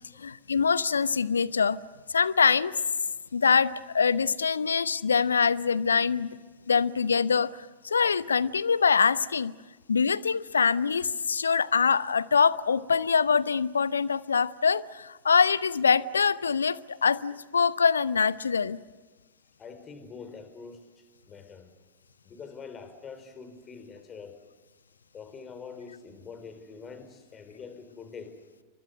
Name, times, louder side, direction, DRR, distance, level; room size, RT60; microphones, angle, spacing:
voice 1, 0.2-1.8 2.1-2.8 3.3-6.3 6.7-7.5 7.8-9.5 9.9-18.8, left 5 dB, 75° left, 18 dB, 0.9 m, -24 dB
voice 2, 19.6-20.9 21.3-21.7 22.2-24.4 25.1-28.4, left 5 dB, 25° left, 9 dB, 4.7 m, -44 dB
29.5 x 25.0 x 6.6 m, 1.3 s
figure-of-eight pair, 90°, 0 cm